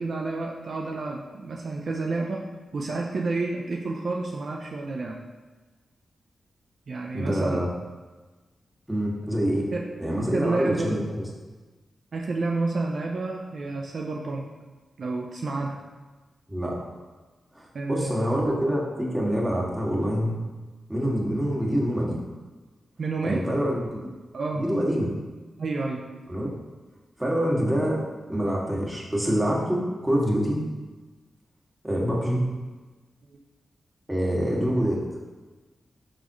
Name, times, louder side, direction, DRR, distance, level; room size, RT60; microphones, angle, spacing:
voice 1, 0.0-2.4 2.7-5.2 6.9-7.7 9.7-9.9 10.3-10.9 12.1-14.5 15.0-15.8 17.7-18.4 23.0-23.4 24.3-24.7 25.6-26.0, right 3 dB, 65° right, 0 dB, 0.7 m, -29 dB
voice 2, 7.1-7.7 8.9-9.7 10.0-11.2 16.5-16.8 17.5-20.4 20.9-22.2 23.2-24.1 24.6-25.1 26.3-26.5 27.2-28.0 28.3-30.6 31.8-32.5 34.1-35.0, equal, 10° right, -3 dB, 2.2 m, -26 dB
11.0 x 4.1 x 3.1 m, 1.3 s
cardioid pair, 55°, 0 cm